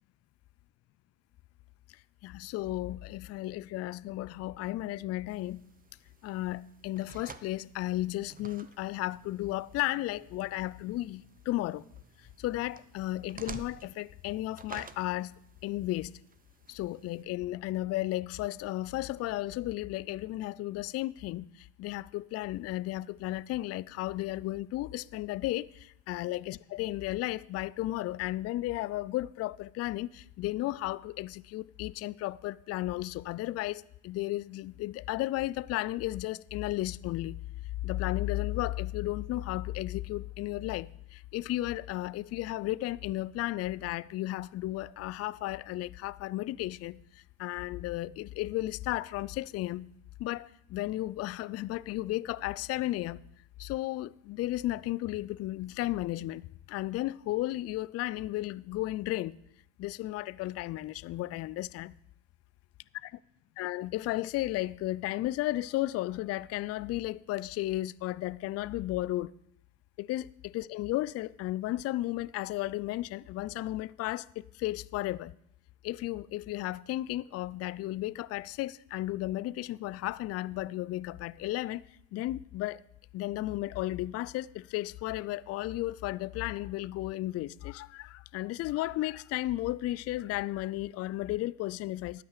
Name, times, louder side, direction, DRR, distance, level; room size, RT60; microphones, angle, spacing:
voice 1, 2.2-5.6 6.2-11.8 12.2-15.3 15.6-16.1 16.7-37.4 37.8-49.9 50.2-53.2 53.6-59.4 59.8-61.9 63.0-63.1 63.6-69.3 70.0-75.3 75.8-81.8 82.1-82.8 83.1-92.2, left 16 dB, 35° left, 0.4 m, -34 dB
sound 1, 5.3-17.2, right 5 dB, 20° right, 0.8 m, -52 dB
13.5 x 9.4 x 4.9 m
hypercardioid pair, 80°, 42 cm